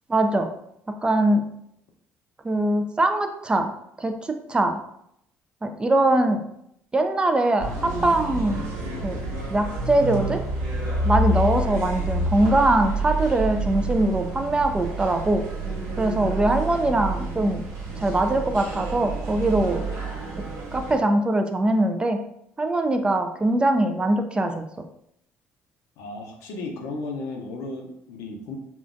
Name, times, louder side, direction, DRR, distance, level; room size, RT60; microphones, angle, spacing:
voice 1, 0.1-0.5 1.0-1.5 2.4-4.8 5.6-6.5 6.9-8.7 9.0-9.2 9.5-10.4 11.0-15.4 16.0-17.7 18.0-19.9 20.7-22.2 22.6-24.6, right 1 dB, 20° right, 6 dB, 0.3 m, -22 dB
sound 1, 7.6-21.0, right 2 dB, 70° right, 1.2 m, -29 dB
voice 2, 16.4-16.9 26.0-28.5, left 2 dB, 80° left, 2 dB, 0.6 m, -35 dB
3.7 x 2.2 x 2.5 m, 0.75 s
cardioid pair, 100°, 5 cm